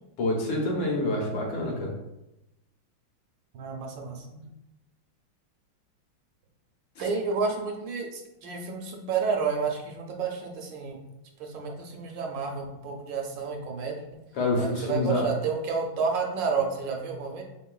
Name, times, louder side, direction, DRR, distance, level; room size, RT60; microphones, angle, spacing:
voice 1, 0.2-2.0 7.0-7.1 14.3-15.3, left 1 dB, 80° left, -1 dB, 1.6 m, -27 dB
voice 2, 3.5-4.5 7.0-11.0 11.4-14.1 14.6-17.4, right 5 dB, 75° right, 2 dB, 1.1 m, -30 dB
4.0 x 3.6 x 2.2 m, 0.91 s
omnidirectional pair, 2.2 m